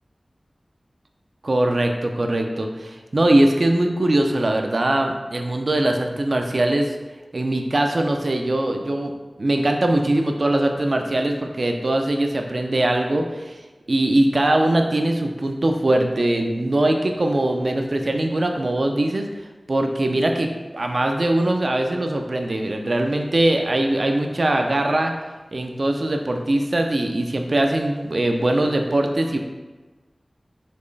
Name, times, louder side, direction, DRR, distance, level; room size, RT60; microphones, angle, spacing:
voice 1, 1.4-7.0 7.3-9.1 9.4-13.6 13.9-19.3 19.7-25.1 25.5-29.4, right 1 dB, 60° right, 4 dB, 0.4 m, -21 dB
4.2 x 3.1 x 3.2 m, 1.2 s
wide cardioid pair, 60°, 0 cm